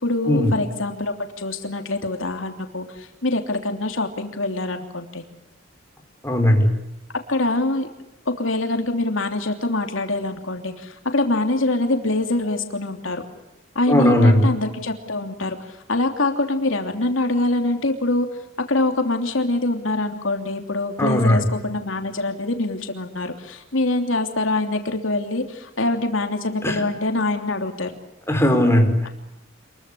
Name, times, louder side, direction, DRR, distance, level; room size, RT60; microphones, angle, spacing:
voice 1, 0.0-5.2 7.3-7.9 8.3-13.2 13.7-18.3 18.7-27.9, left 2 dB, 80° left, 5 dB, 3.1 m, -24 dB
voice 2, 6.2-6.7 13.9-14.5 21.0-21.4 26.6-26.8 28.3-29.0, equal, 15° left, 4 dB, 4.5 m, -17 dB
27.5 x 22.5 x 8.5 m, 0.91 s
head